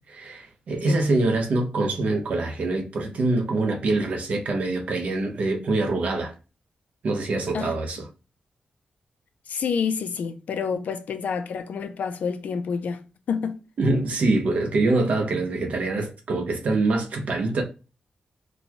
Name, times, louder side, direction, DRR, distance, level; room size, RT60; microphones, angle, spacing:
voice 1, 0.1-6.3 7.0-8.1 13.8-17.6, right 2 dB, 55° right, 0.9 m, -24 dB
voice 2, 9.5-13.6, left 6 dB, 70° left, 0.5 m, -28 dB
4.1 x 2.3 x 2.8 m
wide cardioid pair, 165°, 3 cm